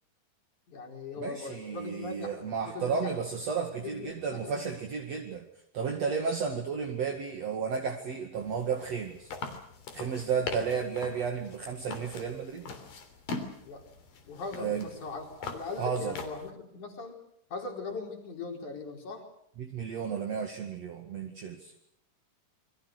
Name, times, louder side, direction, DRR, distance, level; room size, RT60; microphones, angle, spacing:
voice 1, 0.7-2.4 2.6-3.2 3.8-4.6 13.7-13.8 14.3-17.2 17.5-19.3, left 3 dB, 65° left, 3 dB, 5.8 m, -40 dB
voice 2, 1.2-5.5 5.7-9.3 9.9-12.7 14.6-14.8 15.8-16.1 19.6-21.7, right 6 dB, 55° right, 3 dB, 3.1 m, -33 dB
sound 1, 8.4-16.5, left 4 dB, 90° left, 4.9 m, -42 dB
28.5 x 23.5 x 6.6 m, 0.73 s
omnidirectional pair, 3.8 m